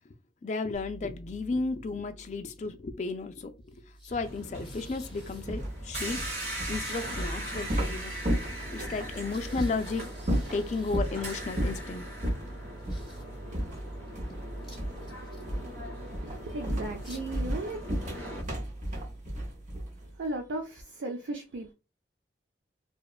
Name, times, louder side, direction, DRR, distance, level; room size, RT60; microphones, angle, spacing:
voice 1, 0.4-6.2 6.7-8.1 8.7-10.1 10.5-12.1, left 3 dB, 40° left, 0.3 m, -34 dB
sound 1, 0.7-20.6, right 1 dB, 5° right, 1.0 m, -46 dB
sound 2, 4.1-18.4, right 1 dB, 65° right, 1.1 m, -41 dB
sound 3, 5.4-9.1 9.6-9.7 10.2-11.2 11.6-11.9 12.2-12.5 12.9-13.1 13.5-14.5 14.8-15.1 15.5-15.8 16.1-20.1, equal, 40° right, 0.7 m, -33 dB
voice 2, 16.1-17.8 20.0-21.7, right 2 dB, 85° right, 0.5 m, -36 dB
2.8 x 2.2 x 2.3 m
head